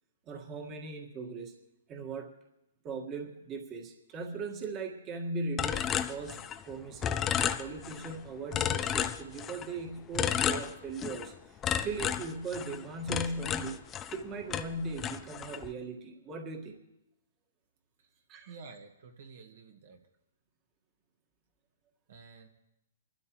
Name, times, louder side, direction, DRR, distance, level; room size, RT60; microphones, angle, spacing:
voice 1, 0.3-1.5 1.9-2.3 2.8-13.8 14.1-16.8 18.3-18.5, right 3 dB, 25° right, 2 dB, 1.7 m, -39 dB
sound 1, 5.6-6.7 7.0-8.1 8.5-9.7 10.2-11.3 11.6-14.2 14.5-15.7, left 9 dB, 20° left, 0.5 m, -32 dB
voice 2, 18.5-20.0 22.1-22.5, right 4 dB, 60° right, 4 dB, 1.7 m, -50 dB
26.0 x 12.5 x 3.1 m, 0.86 s
hypercardioid pair, 140°, 0 cm